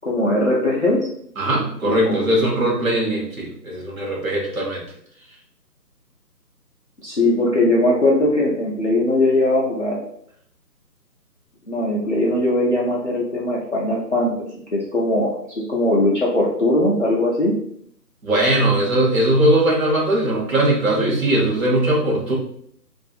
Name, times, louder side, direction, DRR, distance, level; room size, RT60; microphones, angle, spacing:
voice 1, 0.0-1.1 1.8-2.2 7.0-10.0 11.7-15.3 15.7-17.5, left 1 dB, 50° left, -4 dB, 0.4 m, -20 dB
voice 2, 1.4-4.8 18.2-22.3, right 1 dB, 55° right, -3 dB, 1.0 m, -19 dB
2.7 x 2.4 x 2.4 m, 0.66 s
figure-of-eight pair, 170°, 50 cm